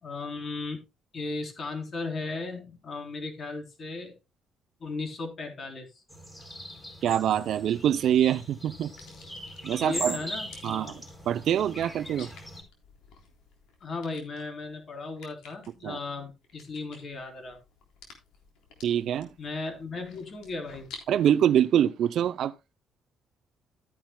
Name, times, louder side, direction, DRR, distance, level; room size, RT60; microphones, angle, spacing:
voice 1, 0.0-0.8 1.1-4.2 4.8-6.0 9.8-11.0 13.8-17.6 19.4-20.9, left 3 dB, 40° left, 3.4 m, -36 dB
sound 1, 6.1-12.6, equal, 15° left, 4.5 m, -41 dB
voice 2, 7.0-8.9 9.6-10.2 10.6-11.0 11.3-12.3 15.8-16.0 18.8-19.3 21.1-22.5, right 10 dB, 65° right, 0.5 m, -24 dB
sound 2, 7.3-21.3, left 5 dB, 90° left, 3.5 m, -53 dB
13.5 x 10.0 x 2.2 m
cardioid pair, 115°, 0 cm